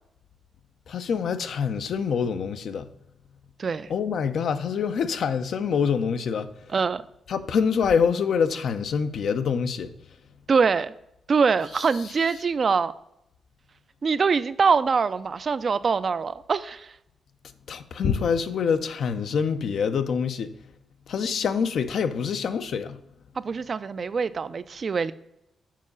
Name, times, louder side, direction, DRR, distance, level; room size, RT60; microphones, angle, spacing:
voice 1, 0.9-2.9 3.9-6.5 7.3-9.9 17.7-20.5 21.1-23.0, left 6 dB, 70° left, 0.6 m, -25 dB
voice 2, 6.7-7.0 10.5-10.9 11.3-12.9 14.0-16.9 23.4-25.1, right 5 dB, 45° right, 0.4 m, -24 dB
7.5 x 4.8 x 5.3 m
cardioid pair, 110°, 0 cm